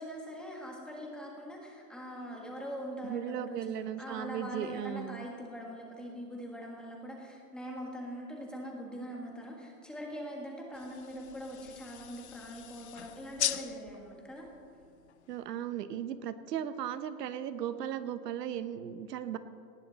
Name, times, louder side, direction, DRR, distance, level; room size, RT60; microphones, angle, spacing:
voice 1, 0.0-14.5, equal, ahead, -2 dB, 1.5 m, -42 dB
voice 2, 3.0-5.3 15.3-19.4, right 10 dB, 70° right, 11 dB, 1.0 m, -37 dB
sound 1, 10.7-15.6, left 11 dB, 45° left, 0.4 m, -40 dB
18.5 x 17.5 x 4.0 m, 2.4 s
supercardioid pair, 180°, 50 cm